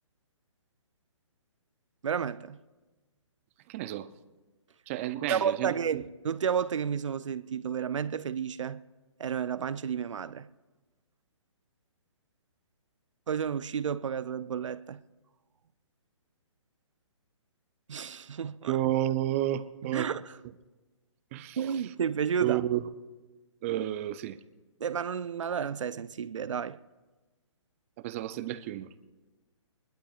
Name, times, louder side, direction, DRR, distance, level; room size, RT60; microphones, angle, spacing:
voice 1, 2.0-2.6 5.3-8.8 9.2-10.5 13.3-15.0 17.9-18.8 19.8-20.4 21.6-22.6 24.8-26.8, right 7 dB, 75° right, 0.6 m, -31 dB
voice 2, 3.7-4.1 4.9-6.0 18.7-20.1 21.3-21.6 22.4-22.8 23.6-24.4 28.0-28.9, right 13 dB, 25° right, 0.6 m, -31 dB
24.5 x 20.5 x 2.4 m
hypercardioid pair, 145°, 16 cm